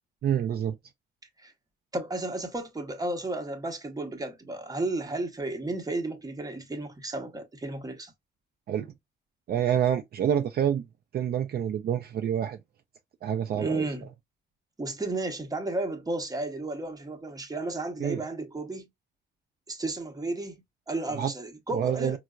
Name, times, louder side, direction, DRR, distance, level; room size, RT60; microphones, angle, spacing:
voice 1, 0.2-0.8 8.7-8.9 9.5-10.8 11.1-12.6 13.2-13.9 18.0-18.2 21.1-21.3 21.7-22.2, right 9 dB, 50° right, 0.4 m, -27 dB
voice 2, 1.9-8.1 13.6-14.1 14.8-18.9 19.7-22.2, right 2 dB, 20° right, 0.9 m, -33 dB
4.4 x 2.0 x 2.3 m
cardioid pair, 90°, 20 cm